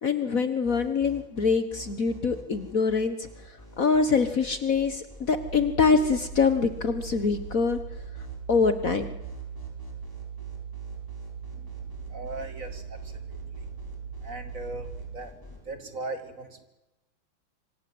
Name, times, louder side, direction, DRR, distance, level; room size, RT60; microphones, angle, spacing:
voice 1, 0.0-3.3 3.8-7.8 8.5-9.1, left 5 dB, 45° left, 10 dB, 1.5 m, -24 dB
sound 1, 0.6-15.6, equal, 10° left, 6.2 m, -47 dB
sound 2, 5.3-15.2, right 7 dB, 65° right, 2.2 m, -40 dB
voice 2, 11.5-13.7 14.2-16.6, right 2 dB, 40° right, 8 dB, 2.7 m, -40 dB
27.0 x 25.5 x 7.8 m, 1.0 s
omnidirectional pair, 2.2 m